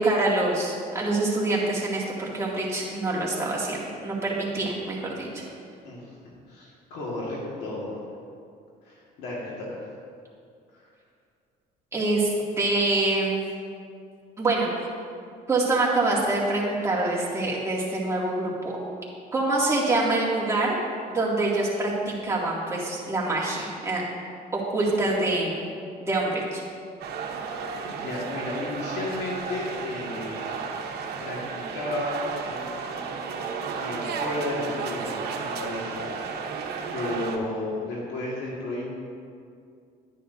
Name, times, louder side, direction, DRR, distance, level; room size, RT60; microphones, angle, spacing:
voice 1, 0.0-5.4 11.9-13.4 14.4-14.9 15.5-18.5 19.3-20.8 21.1-21.9 22.2-24.0 24.5-25.6 26.0-26.6, right 2 dB, 15° right, -6 dB, 2.3 m, -25 dB
voice 2, 5.8-6.2 6.5-8.0 8.8-9.9 10.7-10.8 27.9-30.5 31.2-32.3 33.8-36.0 36.4-36.6 36.9-38.9, left 2 dB, 85° left, -4 dB, 1.9 m, -33 dB
sound 1, 27.0-37.4, right 5 dB, 70° right, 1.0 m, -33 dB
11.0 x 9.8 x 2.7 m, 2.3 s
cardioid pair, 110°, 17 cm